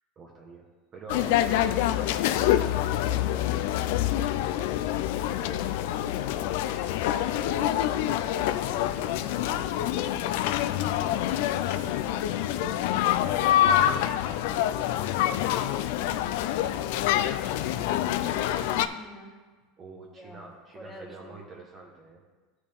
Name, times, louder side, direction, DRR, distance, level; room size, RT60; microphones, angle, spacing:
voice 1, 0.2-4.8 5.2-5.9 19.8-22.2, right 3 dB, 30° right, -1 dB, 1.0 m, -46 dB
sound 1, 1.1-18.9, left 12 dB, 70° left, 0.4 m, -26 dB
voice 2, 7.1-8.0 8.7-9.6 18.6-19.3 20.0-21.3, equal, ahead, -3 dB, 1.6 m, -48 dB
13.5 x 4.9 x 3.5 m, 1.3 s
supercardioid pair, 145°, 0 cm